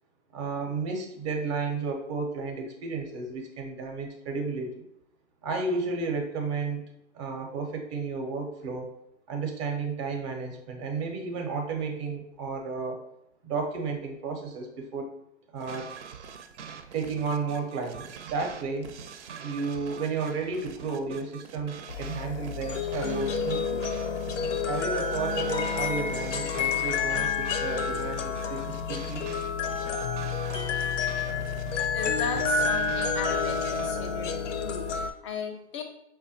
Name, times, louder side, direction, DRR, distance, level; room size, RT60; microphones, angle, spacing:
voice 1, 0.3-4.8 5.4-6.8 7.1-9.0 9.3-13.0 13.4-15.1 15.5-15.9 16.9-18.9 19.4-23.8 24.7-29.3 32.3-32.4, right 4 dB, 25° right, 2 dB, 0.5 m, -32 dB
sound 1, 15.6-33.9, right 7 dB, 75° right, 0.5 m, -44 dB
sound 2, 21.9-35.1, left 5 dB, 85° left, 0.5 m, -29 dB
voice 2, 31.9-35.8, left 5 dB, 25° left, 5 dB, 0.4 m, -37 dB
4.9 x 2.2 x 2.6 m, 0.81 s
hypercardioid pair, 130°, 36 cm